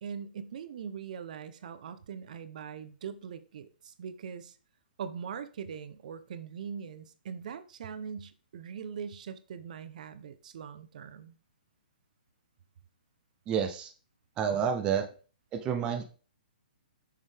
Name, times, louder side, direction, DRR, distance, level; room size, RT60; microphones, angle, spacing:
voice 1, 0.0-4.6 5.0-11.4, right 7 dB, 50° right, 0.8 m, -41 dB
voice 2, 13.5-13.9 14.4-15.0 15.5-16.1, right 7 dB, 15° right, 0.6 m, -29 dB
6.9 x 6.6 x 3.4 m
hypercardioid pair, 165°, 5 cm